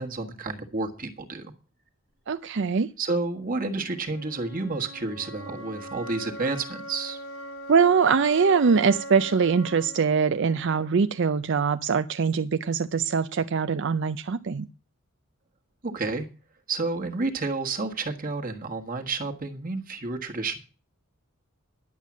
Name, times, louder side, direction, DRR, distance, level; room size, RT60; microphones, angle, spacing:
voice 1, 0.0-1.5 3.0-7.2 15.8-16.3 16.7-20.6, right 3 dB, 40° right, 1.5 m, -30 dB
voice 2, 2.3-2.9 7.7-14.7, right 5 dB, 60° right, 0.5 m, -23 dB
sound 1, 3.4-11.4, equal, 80° left, 3.3 m, -41 dB
11.0 x 7.3 x 7.3 m
head